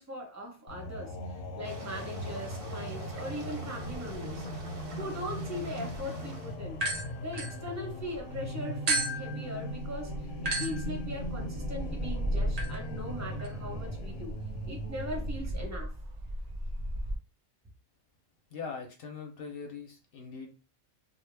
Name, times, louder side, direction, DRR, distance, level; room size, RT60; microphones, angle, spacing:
voice 1, 0.0-4.5 4.9-6.8 7.2-14.4 14.6-16.0, left 1 dB, 15° right, 0.6 m, -40 dB
sound 1, 0.7-15.7, equal, 85° left, 1.0 m, -39 dB
sound 2, 1.6-6.6, right 2 dB, 60° right, 0.7 m, -47 dB
sound 3, 6.7-8.2 8.9-17.2, right 1 dB, 90° right, 0.3 m, -35 dB
voice 2, 18.5-20.5, left 5 dB, 60° left, 0.7 m, -41 dB
2.2 x 2.0 x 3.2 m
omnidirectional pair, 1.3 m